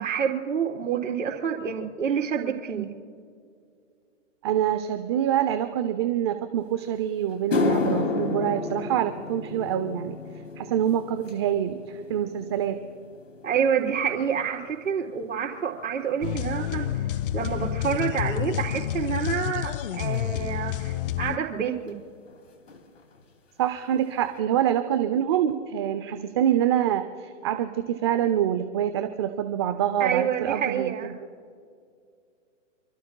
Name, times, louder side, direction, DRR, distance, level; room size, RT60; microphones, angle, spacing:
voice 1, 0.0-2.9 13.4-22.0 30.0-31.1, right 7 dB, 80° right, 1 dB, 4.1 m, -28 dB
voice 2, 4.4-10.2 10.6-12.8 23.6-31.0, right 10 dB, 25° right, 8 dB, 0.4 m, -26 dB
sound 1, 6.8-6.9 7.3-15.8 16.1-16.5 17.3-17.4 20.1-20.2 21.9-22.0 22.2-22.4 22.7-23.2 23.6-23.7 24.2-24.3, left 4 dB, 80° left, 2.5 m, -32 dB
sound 2, 16.2-21.4, left 12 dB, 45° left, 0.4 m, -29 dB
29.0 x 14.0 x 2.2 m, 2.3 s
hypercardioid pair, 140°, 38 cm